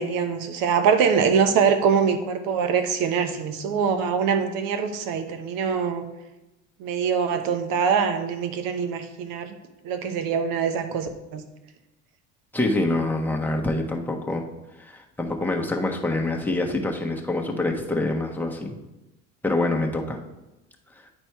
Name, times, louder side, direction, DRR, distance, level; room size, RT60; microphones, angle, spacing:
voice 1, 0.0-6.1 6.8-9.6 9.8-11.4, right 6 dB, 60° right, 8 dB, 1.1 m, -23 dB
voice 2, 12.5-14.4 14.8-18.8 19.4-20.2, left 2 dB, 5° left, 0 dB, 1.3 m, -26 dB
9.9 x 4.3 x 4.6 m, 0.98 s
hypercardioid pair, 75°, 39 cm